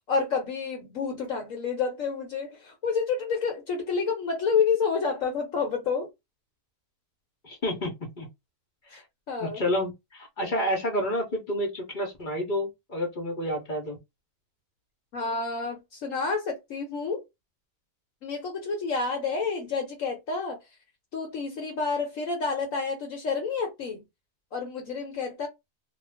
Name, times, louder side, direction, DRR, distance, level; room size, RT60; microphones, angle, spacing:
voice 1, 0.1-6.1 8.9-9.0 9.3-9.6 15.1-17.2 18.2-20.6 21.1-24.0 24.5-25.5, left 5 dB, 65° left, 1.0 m, -29 dB
voice 2, 7.4-8.3 8.9-9.0 9.4-14.0, equal, 40° left, 0.8 m, -29 dB
2.4 x 2.4 x 3.3 m
omnidirectional pair, 1.6 m